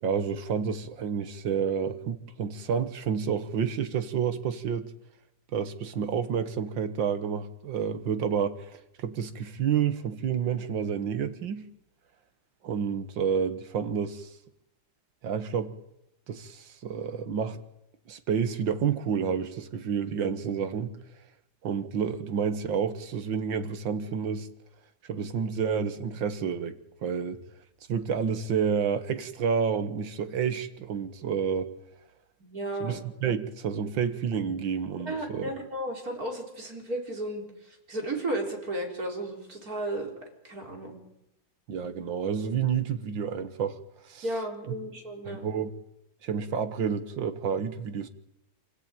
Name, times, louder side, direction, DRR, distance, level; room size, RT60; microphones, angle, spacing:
voice 1, 0.0-4.9 5.5-8.7 9.0-11.7 12.6-14.3 15.2-15.7 16.3-17.6 18.1-21.0 21.6-24.5 25.1-27.4 27.9-31.7 32.8-35.4 41.7-43.8 44.0-44.2 45.3-45.7 46.2-48.1, right 7 dB, 65° right, 2.1 m, -29 dB
voice 2, 32.4-33.1 35.0-41.0 44.2-45.4, right 1 dB, 40° right, 4.6 m, -34 dB
26.0 x 16.0 x 9.1 m
omnidirectional pair, 2.3 m